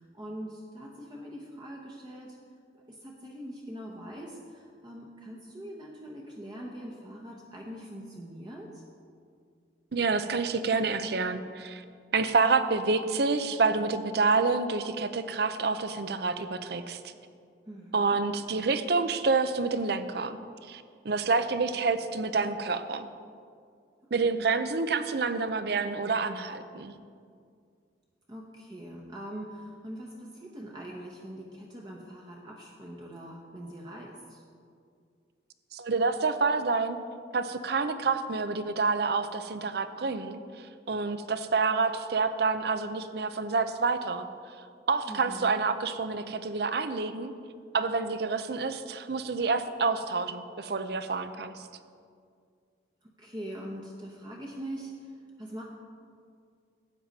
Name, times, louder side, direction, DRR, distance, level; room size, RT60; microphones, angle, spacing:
voice 1, 0.0-2.4 2.9-8.8 17.7-18.2 24.3-24.4 28.3-34.4 45.1-45.5 53.0-55.7, equal, 25° right, -2 dB, 0.9 m, -42 dB
voice 2, 9.9-11.8 12.1-17.0 17.9-20.4 20.7-23.1 24.1-26.9 35.7-37.0 37.3-40.4 40.9-44.3 44.9-47.3 47.7-51.7, right 4 dB, 60° right, 11 dB, 0.6 m, -28 dB
12.5 x 8.7 x 4.1 m, 2.2 s
head